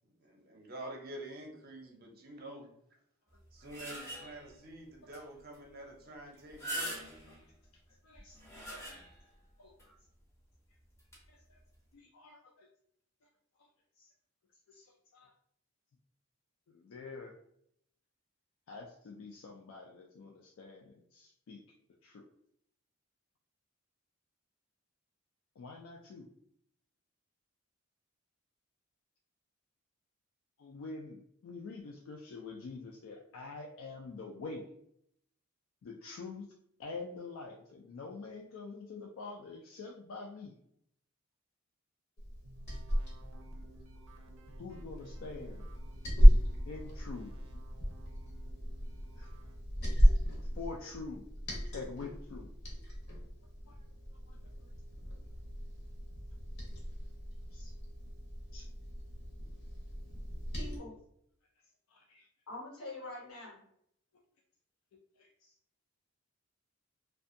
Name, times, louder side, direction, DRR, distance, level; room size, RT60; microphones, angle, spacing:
voice 1, 0.2-2.7 3.5-7.0, right 1 dB, 45° right, 1 dB, 0.6 m, -47 dB
sound 1, 3.3-4.5 5.1-5.2 5.5-5.6 6.4-7.4 8.1-9.3 9.8-9.9 11.0-11.2, right 1 dB, 15° left, 0.5 m, -42 dB
voice 2, 8.0-8.9 9.6-9.9 11.3-11.6 11.9-12.7 14.0-14.1 14.7-15.3 16.7-17.3 18.7-21.6 22.0-22.2 25.6-26.3 30.6-34.7 35.8-36.5 36.8-40.5 44.6-45.7 46.7-47.6 49.2-49.3 50.6-51.2 51.7-52.5 53.7-53.8 54.3-54.4 57.5-57.7 58.5-58.7 61.9-62.3 65.2-65.5, left 4 dB, 70° left, 0 dB, 0.3 m, -46 dB
Liquid, 42.2-60.8, equal, 50° left, 0.7 m, -31 dB
sound 2, 42.4-49.6, right 2 dB, 90° right, 0.5 m, -59 dB
voice 3, 60.5-60.9 62.5-63.6, left 2 dB, 90° left, -3 dB, 1.1 m, -44 dB
2.5 x 2.2 x 2.5 m, 0.72 s
head